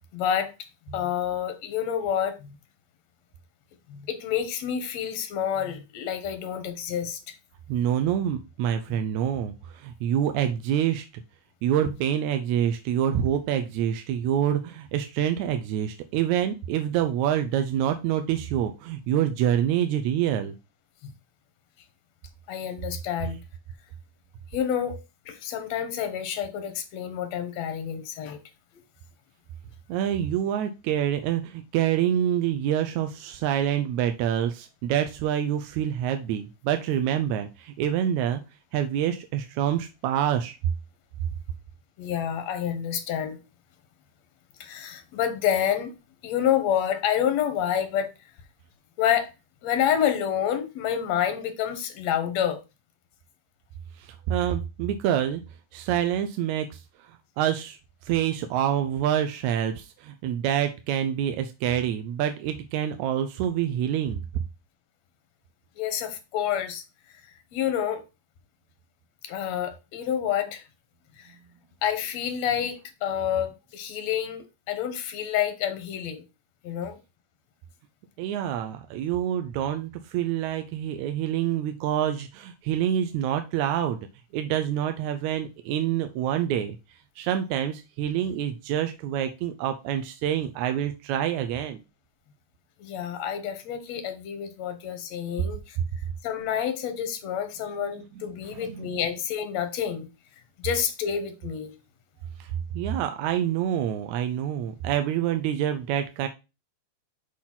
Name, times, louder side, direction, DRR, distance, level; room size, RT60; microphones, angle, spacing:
voice 1, 0.1-0.5 0.9-2.6 3.9-7.4 8.9-9.0 21.0-21.1 22.5-23.4 24.5-25.0 25.3-28.4 42.0-43.4 44.6-46.0 46.2-48.1 49.0-49.3 49.6-52.6 65.8-66.8 67.5-68.0 69.2-70.7 71.2-71.3 71.8-76.2 76.6-77.0 92.8-95.8 96.2-100.1 100.6-101.7, left 9 dB, 70° left, 2.1 m, -28 dB
voice 2, 7.7-11.2 11.6-20.5 29.9-38.4 38.7-40.6 54.0-55.4 55.7-56.8 57.4-64.2 78.2-84.0 84.3-86.8 87.2-91.8 98.5-98.9 102.4-106.3, right 10 dB, 80° right, 1.9 m, -26 dB
6.2 x 3.9 x 5.9 m
omnidirectional pair, 3.4 m